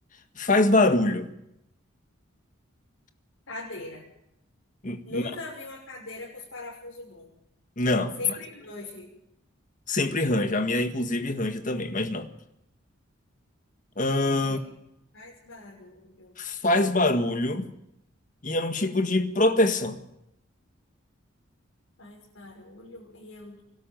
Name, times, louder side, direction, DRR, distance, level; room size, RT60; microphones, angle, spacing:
voice 1, 0.3-1.3 4.8-5.2 7.8-8.2 9.9-12.3 14.0-14.6 16.4-17.7 18.4-20.0, left 2 dB, 40° left, 1.7 m, -24 dB
voice 2, 3.5-4.0 5.0-7.3 8.2-9.1 14.4-14.6 15.1-16.4 22.0-23.6, left 2 dB, 70° left, 6.5 m, -41 dB
23.5 x 12.5 x 9.3 m
head